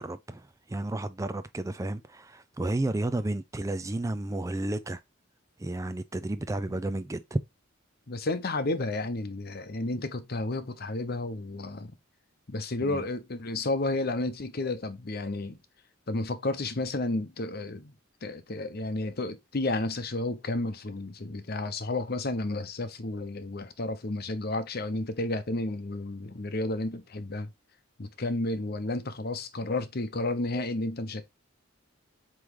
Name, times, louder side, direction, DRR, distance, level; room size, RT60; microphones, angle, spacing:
voice 1, 0.0-5.0 5.6-7.4 12.8-13.1, right 2 dB, 15° right, 0.4 m, -32 dB
voice 2, 8.1-12.0 12.5-15.6 16.1-17.9 18.2-27.5 28.0-31.3, left 2 dB, 50° left, 0.8 m, -32 dB
8.0 x 3.2 x 3.7 m
head